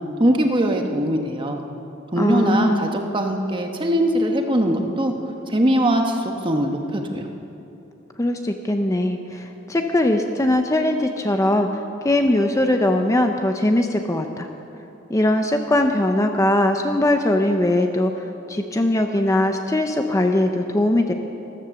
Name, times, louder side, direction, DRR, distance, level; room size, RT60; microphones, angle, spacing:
voice 1, 0.2-1.6 2.1-5.1 5.5-7.3, right 1 dB, 25° right, 4 dB, 1.2 m, -21 dB
voice 2, 2.2-2.9 8.2-14.5 15.1-21.1, left 1 dB, 15° left, 5 dB, 0.6 m, -20 dB
14.0 x 13.0 x 7.1 m, 2.9 s
head